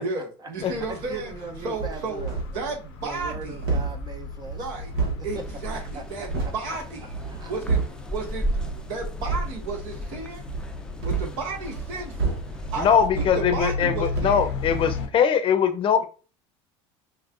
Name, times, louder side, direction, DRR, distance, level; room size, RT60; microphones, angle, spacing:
voice 1, 0.0-1.3 1.6-2.3 2.5-3.6 4.5-4.9 5.2-7.2 7.5-10.5 11.0-14.5, right 3 dB, 70° right, 1.6 m, -33 dB
sound 1, 0.6-15.1, left 4 dB, 85° left, 0.8 m, -36 dB
voice 2, 0.6-2.4 3.0-4.6 5.9-6.0 7.3-7.8, right 4 dB, 30° right, 0.7 m, -39 dB
sound 2, 1.7-2.7 3.0-6.6 7.0-8.1 8.5-8.8 9.2-9.5 10.4-13.9 14.1-14.5, right 4 dB, 85° right, 1.2 m, -30 dB
sound 3, 5.3-13.1, right 1 dB, 5° left, 0.5 m, -36 dB
voice 3, 12.8-16.1, left 7 dB, 40° left, 0.7 m, -21 dB
5.4 x 2.5 x 2.5 m
supercardioid pair, 90°, 13 cm